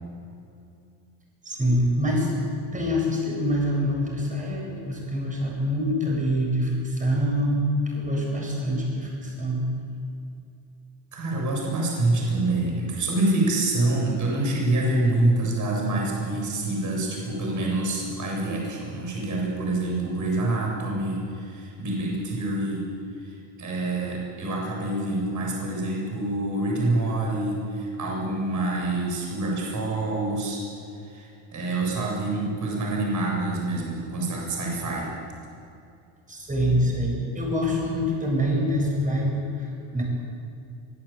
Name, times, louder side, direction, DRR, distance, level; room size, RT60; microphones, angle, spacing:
voice 1, 1.4-2.3 2.7-7.7 7.9-9.7 36.3-40.0, equal, 15° right, -1 dB, 7.9 m, -25 dB
voice 2, 11.1-22.8 23.2-30.6 31.0-35.1, right 2 dB, 40° right, -2 dB, 7.9 m, -26 dB
24.0 x 18.5 x 9.1 m, 2.6 s
cardioid pair, 135°, 46 cm